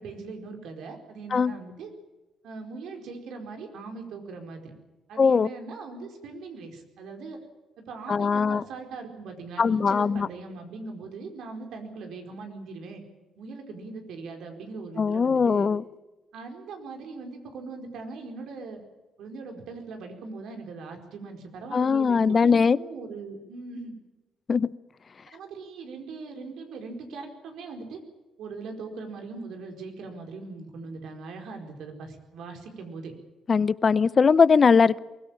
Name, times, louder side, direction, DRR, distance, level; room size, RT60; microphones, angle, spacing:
voice 1, 0.0-1.9 2.4-4.7 5.1-7.4 7.9-13.0 13.4-15.7 16.3-18.8 19.2-23.9 25.3-28.0 28.4-33.1, right 4 dB, 80° right, 4 dB, 4.5 m, -40 dB
voice 2, 5.2-5.5 8.1-8.6 9.6-10.3 15.0-15.8 21.7-22.8 24.5-24.7 33.5-35.0, left 5 dB, 40° left, 18 dB, 0.7 m, -20 dB
23.0 x 16.5 x 9.0 m, 1.1 s
cardioid pair, 90°, 0 cm